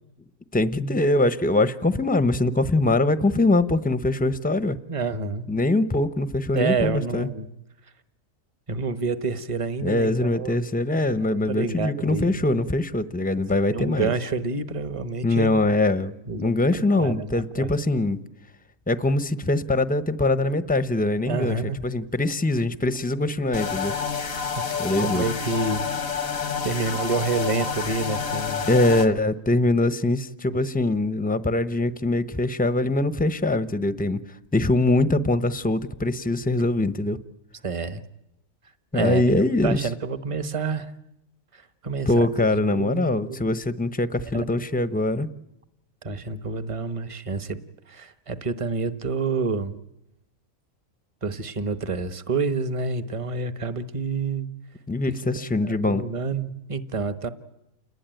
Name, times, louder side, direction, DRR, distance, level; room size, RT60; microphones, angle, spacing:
voice 1, 0.5-4.8 5.5-7.3 9.8-14.1 15.2-18.2 18.9-23.9 24.8-25.3 26.9-27.0 28.7-34.2 34.5-37.2 38.9-39.9 42.1-45.3 54.9-56.0, left 2 dB, 10° left, 13 dB, 0.8 m, -23 dB
voice 2, 4.9-5.5 6.5-7.5 8.7-10.6 11.2-12.4 13.7-15.6 16.3-17.7 21.3-21.8 25.0-25.8 26.6-28.6 36.8-37.0 37.6-38.0 38.9-39.3 39.6-40.9 41.5-42.3 42.7-43.4 44.3-44.5 46.0-47.6 47.9-49.7 51.2-54.5 55.3-57.3, right 4 dB, 25° right, 11 dB, 1.1 m, -28 dB
sound 1, 23.5-29.1, left 6 dB, 85° left, 2.0 m, -29 dB
29.0 x 20.5 x 9.2 m, 0.89 s
omnidirectional pair, 1.4 m